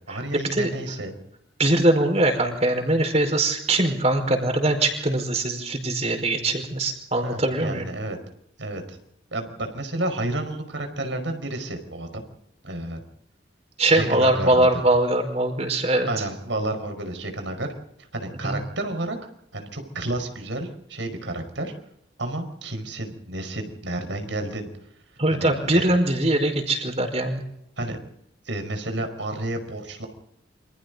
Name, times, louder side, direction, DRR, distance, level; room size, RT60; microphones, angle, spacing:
voice 1, 0.1-1.1 7.1-8.2 8.6-9.0 9.3-12.2 12.6-13.0 13.9-14.8 16.1-17.7 18.0-19.2 19.5-21.7 22.2-24.7 25.3-25.9 27.8-28.0 28.4-30.1, right 1 dB, 85° right, 6 dB, 5.2 m, -31 dB
voice 2, 1.6-7.9 13.8-16.1 18.4-18.6 25.2-27.4, right 1 dB, 35° right, 4 dB, 5.0 m, -22 dB
28.5 x 26.0 x 4.0 m, 0.76 s
head